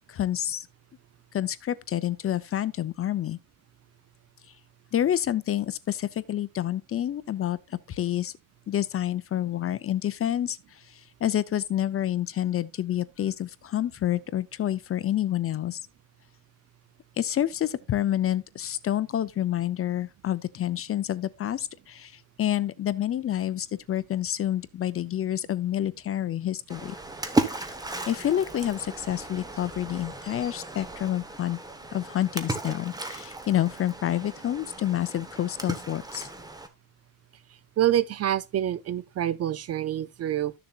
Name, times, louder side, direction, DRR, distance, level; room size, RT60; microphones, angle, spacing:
voice 1, 0.1-0.7 1.3-3.4 4.9-8.3 8.7-15.8 17.2-26.9 28.1-31.6 31.9-36.3, left 11 dB, 35° left, 0.5 m, -28 dB
Splash splatter, 26.7-36.7, right 2 dB, 10° right, 1.0 m, -35 dB
voice 2, 37.8-40.5, right 11 dB, 40° right, 0.4 m, -26 dB
13.5 x 6.9 x 2.3 m
cardioid pair, 150°, 40 cm